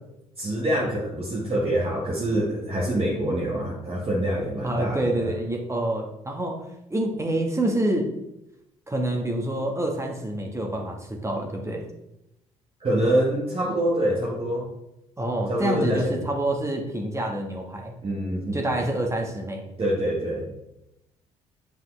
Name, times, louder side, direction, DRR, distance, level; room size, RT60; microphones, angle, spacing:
voice 1, 0.4-5.3 12.8-14.7 15.5-16.2 18.0-18.7 19.8-20.5, right 1 dB, 35° right, -4 dB, 1.7 m, -25 dB
voice 2, 4.6-8.1 8.9-11.8 15.2-17.9 18.5-19.6, right 1 dB, 20° right, 1 dB, 1.5 m, -27 dB
7.6 x 5.2 x 3.4 m, 0.87 s
hypercardioid pair, 50°, 16 cm